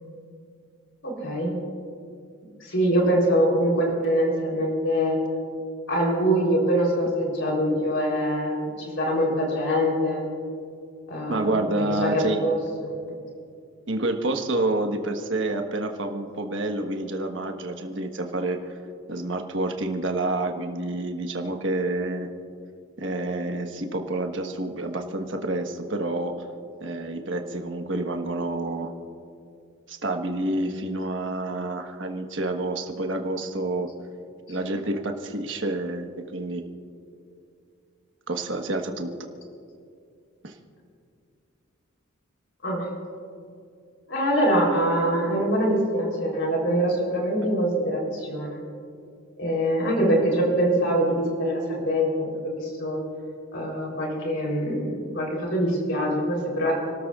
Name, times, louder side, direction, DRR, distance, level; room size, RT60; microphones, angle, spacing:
voice 1, 1.0-1.5 2.6-5.2 5.9-10.2 11.1-12.9 42.6-42.9 44.1-48.6 49.4-53.0 53.5-56.7, equal, 60° left, -1 dB, 3.7 m, -24 dB
voice 2, 11.3-12.5 13.9-18.8 19.1-22.3 23.0-26.3 26.8-28.9 29.9-33.9 34.5-36.0 36.3-36.6 38.3-39.1 40.4-40.5, right 2 dB, 60° right, 4 dB, 1.3 m, -28 dB
30.0 x 13.5 x 2.5 m, 2.4 s
head